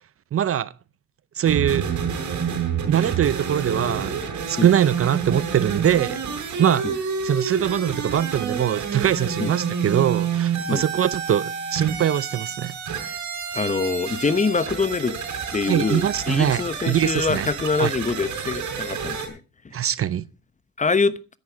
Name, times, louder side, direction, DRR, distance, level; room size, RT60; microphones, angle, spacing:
voice 1, 0.3-0.7 1.4-1.8 2.8-12.7 15.7-16.6 16.9-17.5 17.8-17.9 19.7-20.2, right 10 dB, 50° right, 0.6 m, -23 dB
sound 1, 1.4-19.3, right 6 dB, 70° right, 4.9 m, -29 dB
voice 2, 13.5-15.1 15.5-19.4 19.6-19.7 20.8-21.1, left 4 dB, 25° left, 1.0 m, -24 dB
13.0 x 10.5 x 5.0 m
cardioid pair, 90°, 30 cm